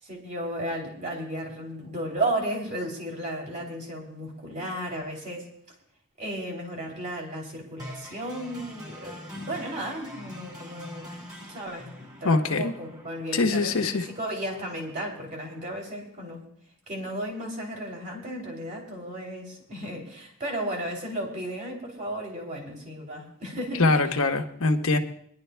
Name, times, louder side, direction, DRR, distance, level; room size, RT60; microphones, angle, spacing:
voice 1, 0.0-5.8 6.2-16.5 16.9-24.2, right 1 dB, 35° right, 0 dB, 2.8 m, -34 dB
sound 1, 7.8-15.8, equal, 20° right, 2.4 m, -45 dB
voice 2, 12.2-12.7 13.3-14.0 23.8-25.0, left 3 dB, 70° left, 4 dB, 1.1 m, -23 dB
23.5 x 11.0 x 2.3 m, 0.66 s
head